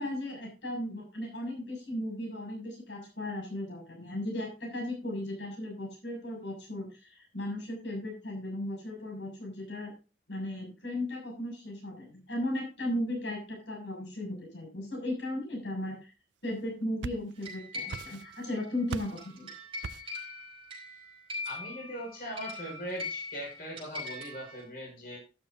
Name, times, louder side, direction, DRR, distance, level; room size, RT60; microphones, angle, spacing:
voice 1, 0.0-9.9 10.3-16.1 16.4-19.5, left 1 dB, 80° left, 1 dB, 6.7 m, -36 dB
sound 1, 16.6-17.6 17.9-18.5 18.9-19.3 19.8-20.2, right 5 dB, 85° right, 0.5 m, -40 dB
sound 2, 17.4-24.6, left 2 dB, 30° right, 5.2 m, -42 dB
voice 2, 21.4-25.2, equal, 50° left, -1 dB, 6.0 m, -40 dB
12.5 x 12.0 x 2.7 m, 0.30 s
head